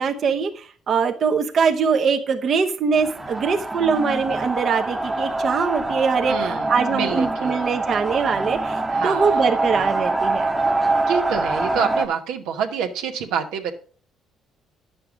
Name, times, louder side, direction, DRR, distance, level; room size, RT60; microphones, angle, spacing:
voice 1, 0.0-10.5, right 5 dB, 55° right, 4 dB, 0.9 m, -22 dB
sound 1, 2.9-12.1, right 2 dB, 15° right, 1.0 m, -24 dB
voice 2, 6.3-7.6 8.9-9.5 11.1-13.7, right 7 dB, 85° right, 4 dB, 1.1 m, -27 dB
9.6 x 6.7 x 4.9 m, 0.41 s
supercardioid pair, 80°, 0 cm